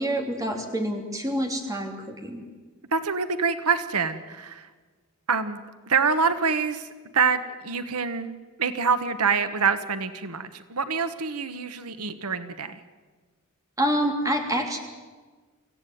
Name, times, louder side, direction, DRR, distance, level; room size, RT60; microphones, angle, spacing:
voice 1, 0.0-2.4 13.8-14.8, equal, 15° right, 3 dB, 3.0 m, -27 dB
voice 2, 2.9-4.7 5.3-5.6 5.9-6.9 7.1-8.3 8.6-12.8, right 5 dB, 90° right, 11 dB, 1.3 m, -26 dB
25.5 x 16.0 x 9.3 m, 1.4 s
head